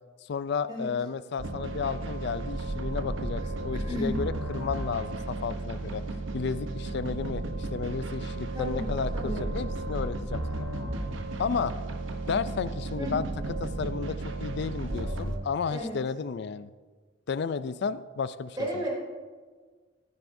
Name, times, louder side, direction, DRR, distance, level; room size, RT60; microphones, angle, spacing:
voice 1, 0.3-6.0 6.3-10.7 11.4-11.7 12.2-13.3 13.6-16.7 17.3-18.8, left 5 dB, 60° left, 15 dB, 0.4 m, -32 dB
sound 1, 1.4-15.4, right 2 dB, 80° right, 0.8 m, -34 dB
voice 2, 3.7-4.2 8.5-9.4 13.0-13.2 15.7-16.0 18.6-18.9, equal, 20° right, -4 dB, 3.0 m, -33 dB
14.0 x 9.3 x 2.7 m, 1.4 s
head